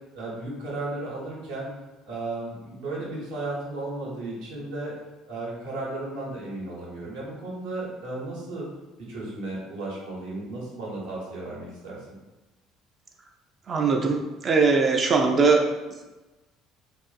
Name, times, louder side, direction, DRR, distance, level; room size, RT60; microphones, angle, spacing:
voice 1, 0.1-1.7 2.1-4.9 5.3-8.7 9.0-12.2, right 2 dB, 70° right, -6 dB, 0.9 m, -34 dB
voice 2, 13.7-15.6, right 4 dB, 40° right, 2 dB, 0.3 m, -21 dB
2.4 x 2.4 x 2.4 m, 1.1 s
hypercardioid pair, 60°, 0 cm